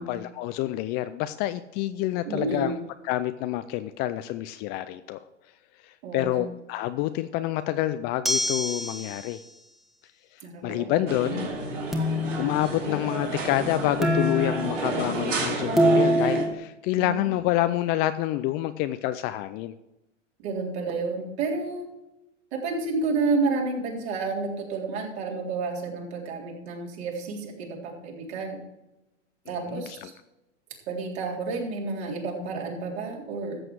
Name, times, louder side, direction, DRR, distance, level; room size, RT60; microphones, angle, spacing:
voice 1, 0.0-2.7 3.0-5.2 5.8-9.4 10.3-11.5 12.1-19.7 29.7-30.1, left 14 dB, 30° left, 12 dB, 0.4 m, -28 dB
voice 2, 2.3-2.8 6.0-6.4 10.4-11.4 17.0-17.4 20.4-21.9 22.5-28.6 29.5-30.1 30.9-33.6, right 3 dB, 55° right, -1 dB, 3.8 m, -30 dB
sound 1, 8.3-9.3 11.9-12.7 14.0-15.3 15.8-16.5, equal, ahead, 1.4 m, -25 dB
sound 2, 11.1-16.5, right 2 dB, 85° right, 3.4 m, -31 dB
14.0 x 7.8 x 4.7 m, 0.94 s
hypercardioid pair, 110°, 37 cm